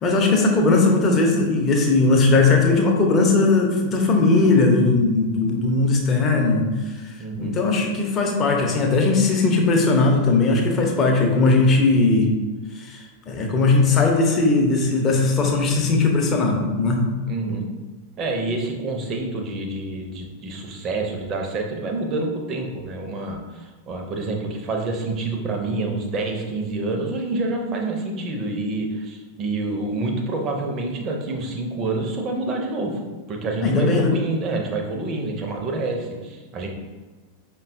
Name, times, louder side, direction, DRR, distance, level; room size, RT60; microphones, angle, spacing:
voice 1, 0.0-6.7 7.4-12.3 12.8-13.0 13.3-17.1 33.6-34.1, left 3 dB, 25° left, 1 dB, 0.7 m, -18 dB
voice 2, 7.2-7.6 17.3-17.7 18.2-33.0 33.3-36.7, right 2 dB, 30° right, 2 dB, 0.6 m, -27 dB
5.3 x 2.2 x 2.6 m, 1.3 s
figure-of-eight pair, 90°, 0 cm